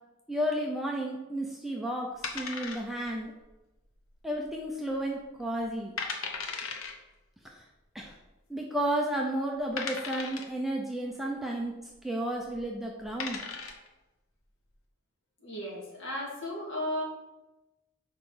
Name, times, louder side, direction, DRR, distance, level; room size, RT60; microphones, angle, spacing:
voice 1, 0.3-2.1 2.3-3.3 4.2-5.9 7.9-8.1 8.5-11.7 12.0-13.4, right 1 dB, ahead, -1 dB, 0.5 m, -32 dB
sound 1, 2.2-3.2 3.5-3.6 4.2-4.6 4.9-5.0 5.6-5.7 6.0-6.9 8.0-8.1 8.8-8.9 9.8-10.6 12.4-12.6 13.0-13.9, left 5 dB, 75° left, 0.9 m, -36 dB
voice 2, 15.4-17.0, left 1 dB, 55° left, -4 dB, 2.2 m, -35 dB
4.9 x 4.7 x 5.5 m, 1.0 s
head